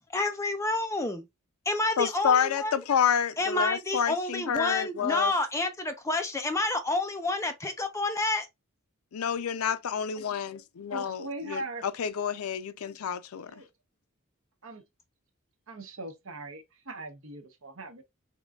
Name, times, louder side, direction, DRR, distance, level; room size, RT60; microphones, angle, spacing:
voice 1, 0.1-1.2 1.7-2.7 3.4-8.5, left 2 dB, 15° left, 0.6 m, -29 dB
voice 2, 2.0-5.3 9.1-11.2 11.5-13.5, left 7 dB, 85° left, 0.4 m, -28 dB
voice 3, 10.9-11.8 13.5-13.7 14.6-14.8 15.7-18.0, right 2 dB, 65° right, 0.9 m, -40 dB
3.7 x 3.0 x 2.3 m
head